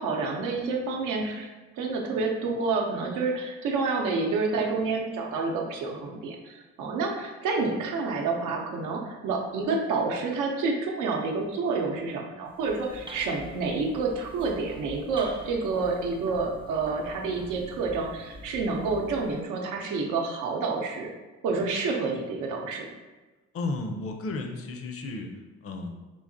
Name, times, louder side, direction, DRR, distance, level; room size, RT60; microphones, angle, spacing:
voice 1, 0.0-1.5 1.8-21.1 21.4-22.9, right 4 dB, 90° right, 1 dB, 0.6 m, -29 dB
sound 1, 12.5-19.4, equal, 20° right, 0.4 m, -45 dB
voice 2, 23.5-25.3 25.6-26.0, left 2 dB, 50° left, 4 dB, 0.5 m, -33 dB
3.8 x 2.8 x 2.6 m, 1.2 s
cardioid pair, 90°, 30 cm